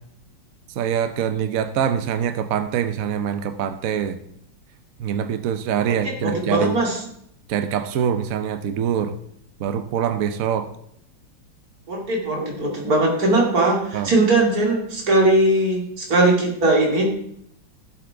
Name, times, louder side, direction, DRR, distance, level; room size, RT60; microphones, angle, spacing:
voice 1, 0.8-4.2 5.0-6.8 7.5-9.1 9.6-10.7 13.9-14.1, right 8 dB, 70° right, 10 dB, 0.8 m, -24 dB
voice 2, 5.9-7.0 11.9-17.1, right 2 dB, 45° right, -1 dB, 2.8 m, -20 dB
16.5 x 7.7 x 3.4 m, 0.71 s
omnidirectional pair, 2.2 m